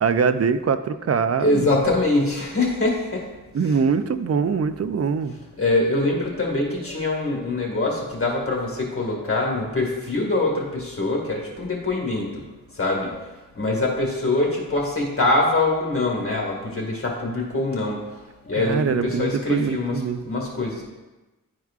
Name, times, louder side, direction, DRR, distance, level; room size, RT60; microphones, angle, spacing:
voice 1, 0.0-1.8 3.5-5.3 18.6-20.2, right 6 dB, 45° right, 11 dB, 0.4 m, -23 dB
voice 2, 1.4-3.2 5.6-12.4 12.7-13.2 13.6-18.2 18.4-20.0 20.3-20.8, left 2 dB, 40° left, -2 dB, 1.9 m, -24 dB
11.0 x 4.6 x 2.4 m, 1.1 s
wide cardioid pair, 90°, 34 cm